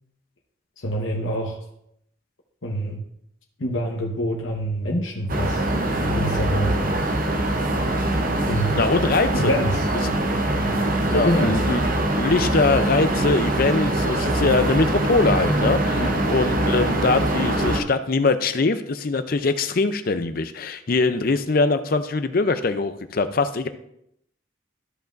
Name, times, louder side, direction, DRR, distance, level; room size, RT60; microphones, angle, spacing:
voice 1, 0.8-1.6 2.6-3.0 3.6-5.7 6.0-6.8 8.5-8.8 9.3-9.8 11.1-11.6 15.9-16.2, equal, 75° left, -1 dB, 1.1 m, -25 dB
sound 1, 5.3-17.8, right 1 dB, 45° right, 0.7 m, -23 dB
voice 2, 8.7-9.5 11.1-11.8 12.2-23.7, left 3 dB, 45° left, 10 dB, 0.5 m, -22 dB
13.0 x 5.5 x 2.5 m, 0.75 s
head